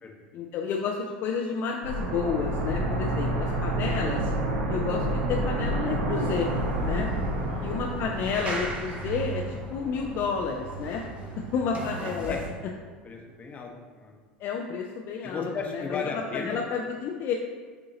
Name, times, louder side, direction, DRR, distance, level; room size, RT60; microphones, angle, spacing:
voice 1, 0.3-4.3 4.7-6.5 6.8-7.1 7.6-11.0 11.5-12.3 14.4-16.0 16.3-17.3, left 6 dB, 50° left, 1 dB, 0.4 m, -30 dB
sound 1, 1.8-10.5 10.8-10.9, right 1 dB, 75° right, 0.8 m, -29 dB
sound 2, 6.1-12.5, right 3 dB, 25° right, 0.8 m, -38 dB
voice 2, 7.5-7.8 12.3-12.4 13.0-14.1 15.2-16.6, left 4 dB, 30° left, 1 dB, 0.8 m, -35 dB
6.6 x 2.7 x 2.7 m, 1.6 s
hypercardioid pair, 85°, 5 cm